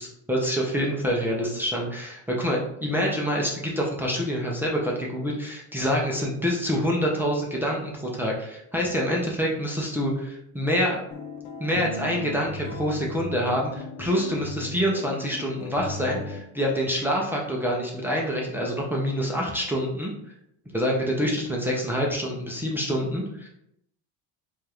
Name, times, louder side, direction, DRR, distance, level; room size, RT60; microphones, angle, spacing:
voice 1, 0.0-11.0 11.6-20.1 20.7-23.5, equal, 5° right, -3 dB, 0.3 m, -26 dB
sound 1, 11.1-16.4, left 3 dB, 85° left, 0.6 m, -37 dB
4.8 x 2.4 x 2.9 m, 0.78 s
cardioid pair, 155°, 40 cm